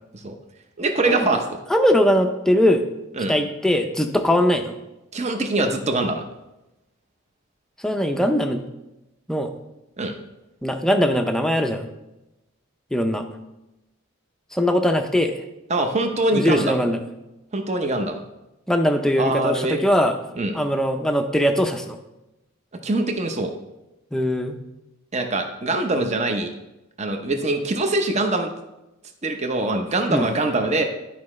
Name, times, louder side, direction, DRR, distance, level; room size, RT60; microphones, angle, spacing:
voice 1, 0.8-1.6 3.2-3.3 5.1-6.2 10.0-10.1 15.7-16.8 17.5-18.2 19.2-19.8 20.3-20.6 22.8-23.5 25.1-26.5 27.0-28.5 29.2-30.8, right 2 dB, 30° right, 5 dB, 0.7 m, -23 dB
voice 2, 1.7-2.8 3.3-4.7 7.8-8.6 9.3-9.5 10.6-11.9 12.9-13.2 14.5-15.3 16.3-17.0 18.7-20.2 20.5-22.0 24.1-24.6 30.1-30.2, equal, 5° left, 5 dB, 0.5 m, -20 dB
12.0 x 4.8 x 3.2 m, 0.96 s
head